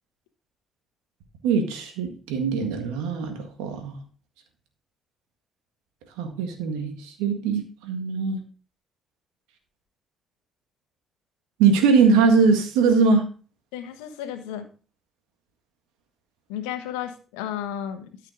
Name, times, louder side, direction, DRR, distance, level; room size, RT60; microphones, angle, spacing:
voice 1, 1.4-4.0 6.2-8.4 11.6-13.2, right 5 dB, 80° right, 5 dB, 1.7 m, -21 dB
voice 2, 13.7-14.7 16.5-18.3, left 10 dB, 85° left, 8 dB, 1.2 m, -33 dB
13.0 x 5.7 x 3.7 m, 0.37 s
hypercardioid pair, 45°, 0 cm